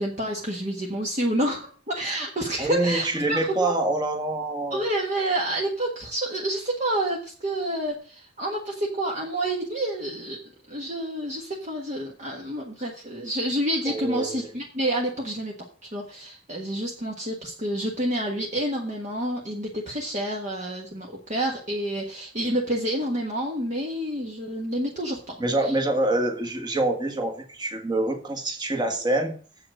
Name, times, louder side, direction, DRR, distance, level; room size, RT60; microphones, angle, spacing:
voice 1, 0.0-3.7 4.7-10.4 10.7-15.5 15.9-25.2 25.6-25.7, right 1 dB, 40° right, -1 dB, 1.4 m, -28 dB
voice 2, 2.6-4.8 13.8-14.5 25.4-29.3, right 2 dB, 20° right, 2 dB, 1.6 m, -26 dB
7.7 x 5.8 x 7.7 m, 0.42 s
head